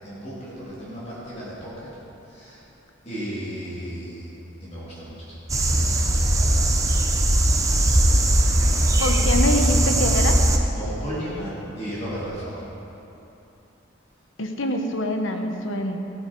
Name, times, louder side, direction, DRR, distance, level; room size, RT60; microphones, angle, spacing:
voice 1, 0.0-1.9 2.3-2.6 3.0-4.3 4.6-7.0 7.4-8.8 9.2-9.4 10.8-12.6, equal, 35° left, -9 dB, 3.4 m, -36 dB
sound 1, 5.5-10.6, right 1 dB, 15° right, 0.7 m, -19 dB
voice 2, 9.0-10.4 14.4-16.0, left 1 dB, 80° left, 5 dB, 1.1 m, -25 dB
15.5 x 9.6 x 4.6 m, 3.0 s
head